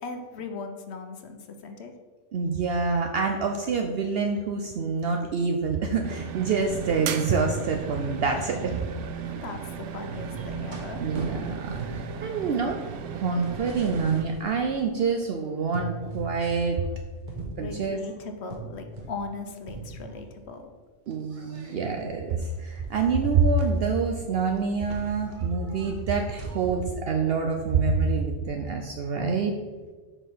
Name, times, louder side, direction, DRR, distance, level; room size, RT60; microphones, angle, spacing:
voice 1, 0.0-1.9 9.2-11.0 17.6-20.7, left 4 dB, 65° left, 6 dB, 1.0 m, -38 dB
voice 2, 2.3-8.7 11.0-12.8 13.1-16.8 17.6-18.0 21.1-29.5, right 4 dB, 60° right, 3 dB, 0.7 m, -26 dB
sound 1, 6.0-14.2, right 7 dB, 80° right, 1.0 m, -35 dB
sound 2, 10.1-15.3 15.7-16.3 16.7-19.4 19.7-20.5 21.1-26.9, right 2 dB, 45° right, 1.1 m, -41 dB
5.5 x 4.8 x 5.5 m, 1.4 s
omnidirectional pair, 1.2 m